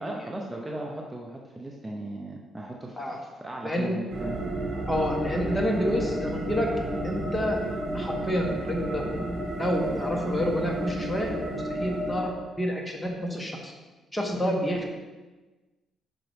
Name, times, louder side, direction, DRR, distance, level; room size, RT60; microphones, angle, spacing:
voice 1, 0.0-4.3, right 2 dB, 15° right, -1 dB, 0.7 m, -37 dB
voice 2, 3.6-3.9 4.9-6.7 7.0-7.6 7.9-9.0 9.6-12.3 12.6-13.7 14.1-14.9, equal, 10° left, 1 dB, 1.1 m, -28 dB
sound 1, 4.1-12.2, right 1 dB, 40° right, 1.6 m, -32 dB
5.7 x 5.2 x 3.4 m, 1.2 s
cardioid pair, 90°, 0 cm